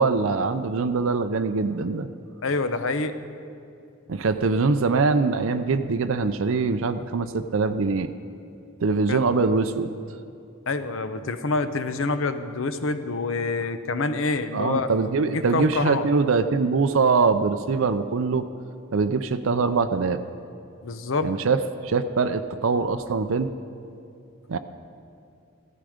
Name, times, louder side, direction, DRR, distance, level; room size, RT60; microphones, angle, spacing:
voice 1, 0.0-2.1 4.1-8.1 8.8-9.9 14.5-18.5 18.9-20.2 21.2-23.5 24.5-24.6, right 4 dB, 70° right, 9 dB, 0.5 m, -23 dB
voice 2, 2.4-3.2 9.1-9.2 10.7-14.9 15.3-16.1 20.8-21.4, left 3 dB, 65° left, 10 dB, 0.8 m, -26 dB
15.5 x 14.0 x 5.0 m, 2.5 s
head